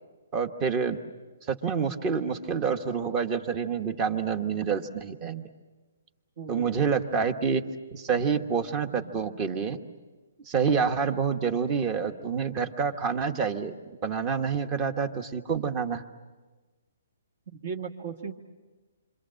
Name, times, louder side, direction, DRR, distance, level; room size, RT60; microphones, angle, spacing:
voice 1, 0.3-1.0 1.5-5.5 6.5-7.6 7.9-9.8 10.5-13.7 14.0-16.0, right 6 dB, 20° right, 9 dB, 1.2 m, -27 dB
voice 2, 6.4-6.9 8.8-9.5 17.5-18.3, right 5 dB, 50° right, 2 dB, 1.6 m, -39 dB
27.5 x 25.0 x 7.6 m, 1.3 s
hypercardioid pair, 165°, 0 cm